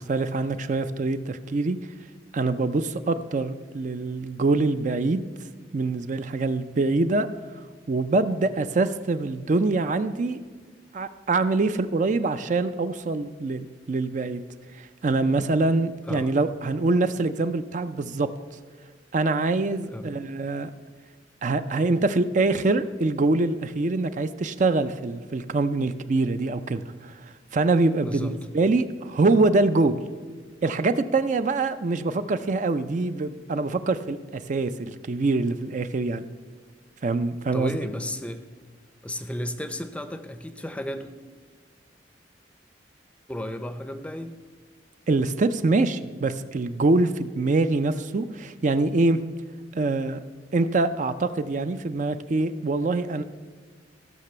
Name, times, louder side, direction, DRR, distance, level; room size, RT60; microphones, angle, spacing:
voice 1, 0.0-1.8 2.3-5.2 5.7-7.3 7.9-10.4 10.9-14.4 14.7-18.3 19.1-20.7 21.4-30.0 30.6-36.3 37.0-37.7 45.1-49.2 49.7-50.2 50.5-53.2, right 3 dB, 45° right, 11 dB, 0.4 m, -24 dB
voice 2, 37.5-38.4 39.0-41.1 43.3-44.4, left 1 dB, 5° left, 10 dB, 0.5 m, -33 dB
15.0 x 5.9 x 6.7 m, 1.4 s
head